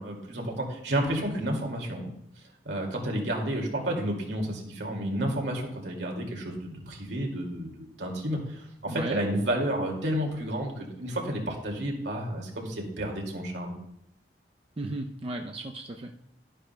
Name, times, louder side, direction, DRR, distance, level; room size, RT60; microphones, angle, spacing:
voice 1, 0.0-2.1 2.7-13.8, right 1 dB, 75° right, 0 dB, 2.2 m, -31 dB
voice 2, 8.9-9.2 14.8-16.1, right 2 dB, 30° right, 3 dB, 0.5 m, -35 dB
12.5 x 10.0 x 2.2 m, 0.76 s
head